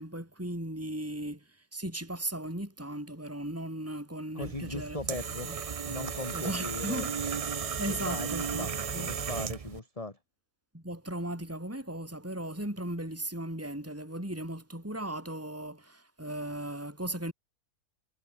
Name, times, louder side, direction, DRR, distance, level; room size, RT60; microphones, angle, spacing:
voice 1, 0.0-5.0 5.4-5.5 6.3-7.4 7.8-9.1 10.7-17.3, right 1 dB, 10° right, 5.1 m, -37 dB
voice 2, 4.3-5.5 5.9-7.1 7.9-10.2, left 2 dB, 20° left, 2.5 m, -39 dB
sound 1, 4.4-9.8, right 6 dB, 60° right, 0.3 m, -35 dB
omnidirectional pair, 1.6 m